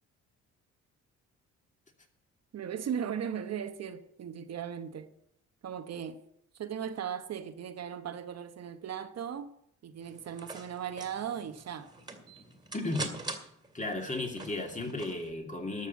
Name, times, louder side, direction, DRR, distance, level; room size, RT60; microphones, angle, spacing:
voice 1, 2.5-5.1 5.6-6.2 6.5-9.5 9.8-11.9, right 8 dB, 55° right, 1.0 m, -37 dB
sound 1, 10.0-15.3, right 2 dB, 15° right, 2.3 m, -44 dB
voice 2, 12.7-13.1 13.7-15.9, left 2 dB, 25° left, 2.7 m, -34 dB
12.5 x 6.6 x 8.3 m
cardioid pair, 90°, 30 cm